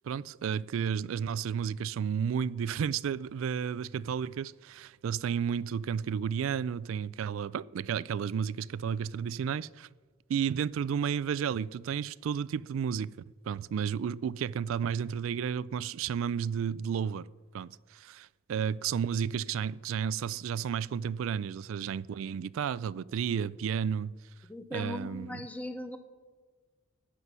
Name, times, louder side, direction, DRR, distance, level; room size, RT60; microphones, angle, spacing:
voice 1, 0.0-9.9 10.3-13.1 13.5-17.3 17.5-24.1 24.7-25.4, right 7 dB, 70° right, 0.3 m, -32 dB
voice 2, 24.5-26.0, left 2 dB, 5° left, 0.6 m, -38 dB
15.5 x 9.5 x 5.5 m
head